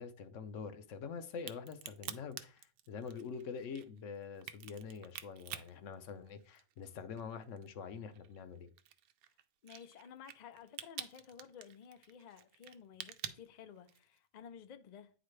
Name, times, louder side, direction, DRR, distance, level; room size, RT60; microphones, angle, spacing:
voice 1, 0.0-8.7, left 6 dB, 65° left, 1.0 m, -45 dB
Crack, 1.3-6.8 7.2-14.2, right 11 dB, 85° right, 1.0 m, -48 dB
voice 2, 9.6-15.1, left 8 dB, 85° left, 0.3 m, -54 dB
9.3 x 4.0 x 3.2 m
omnidirectional pair, 1.5 m